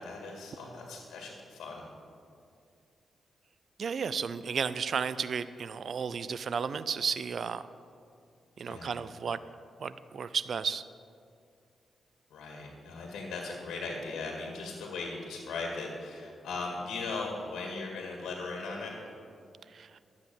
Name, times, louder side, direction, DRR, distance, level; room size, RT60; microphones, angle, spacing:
voice 1, 0.0-1.8 8.7-9.0 12.3-18.9, left 3 dB, 90° left, 0 dB, 1.9 m, -38 dB
voice 2, 3.8-7.6 8.6-9.4 9.8-10.8 19.7-19.9, right 6 dB, 65° right, 15 dB, 0.5 m, -33 dB
12.0 x 8.2 x 7.0 m, 2.4 s
cardioid pair, 70°, 0 cm